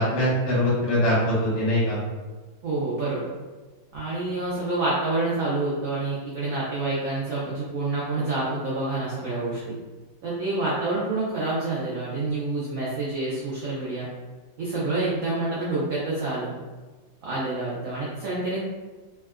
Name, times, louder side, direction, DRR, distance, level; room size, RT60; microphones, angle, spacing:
voice 1, 0.0-2.0, left 1 dB, 65° left, -7 dB, 1.6 m, -22 dB
voice 2, 2.6-3.2 3.9-9.8 10.2-14.1 14.6-16.5 17.2-18.6, right 2 dB, 90° right, -7 dB, 0.7 m, -27 dB
3.5 x 2.1 x 2.3 m, 1.3 s
omnidirectional pair, 2.2 m